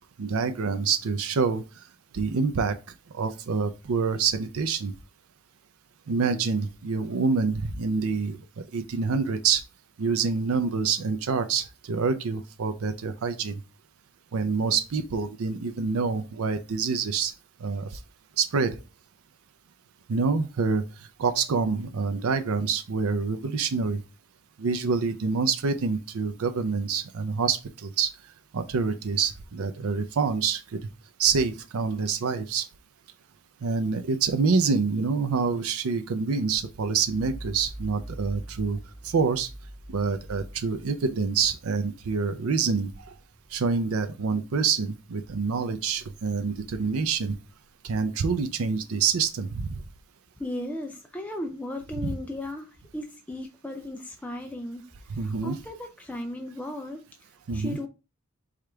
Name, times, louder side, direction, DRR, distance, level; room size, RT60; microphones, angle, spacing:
voice 1, 0.2-1.6 2.1-2.8 3.1-4.9 6.1-9.6 10.0-13.5 14.3-17.3 17.6-17.9 18.4-18.8 20.1-20.8 21.2-24.0 24.6-28.1 28.5-30.6 31.2-32.6 33.6-38.8 39.0-39.5 39.9-43.1 43.5-47.3 47.8-49.8 55.1-55.6 57.5-57.8, right 5 dB, 85° right, 0.5 m, -26 dB
sound 1, 36.6-44.9 45.3-47.9, right 1 dB, 35° left, 1.5 m, -45 dB
voice 2, 50.4-57.9, left 1 dB, 5° left, 0.3 m, -36 dB
4.9 x 2.4 x 4.3 m
head